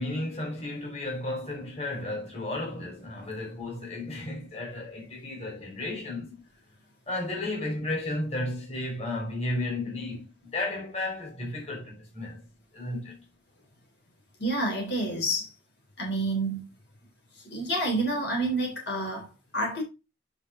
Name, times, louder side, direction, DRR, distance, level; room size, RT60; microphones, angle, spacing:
voice 1, 0.0-6.4 7.1-12.4 12.7-13.2, left 2 dB, 35° left, 4.1 m, -33 dB
voice 2, 14.4-15.5 16.0-16.6 17.4-19.8, right 1 dB, 70° left, 3.6 m, -29 dB
9.7 x 5.2 x 3.7 m
head